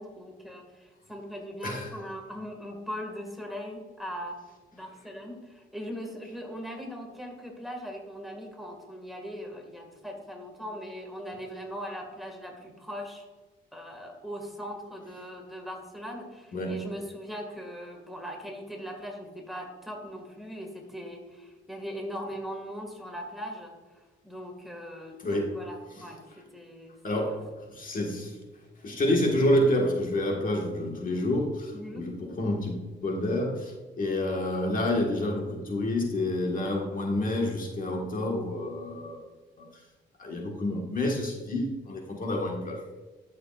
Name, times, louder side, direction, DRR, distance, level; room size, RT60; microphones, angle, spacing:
voice 1, 0.0-4.4 4.7-13.2 13.7-23.7 24.2-26.2 26.5-27.4 31.7-32.1, equal, ahead, 1 dB, 1.9 m, -40 dB
voice 2, 16.5-16.8 25.2-25.6 25.9-26.1 27.0-28.4 28.8-32.7 33.0-39.2 39.6-39.8 40.2-43.0, left 1 dB, 45° left, 0 dB, 1.6 m, -28 dB
12.5 x 6.6 x 2.5 m, 1.3 s
cardioid pair, 90°, 20 cm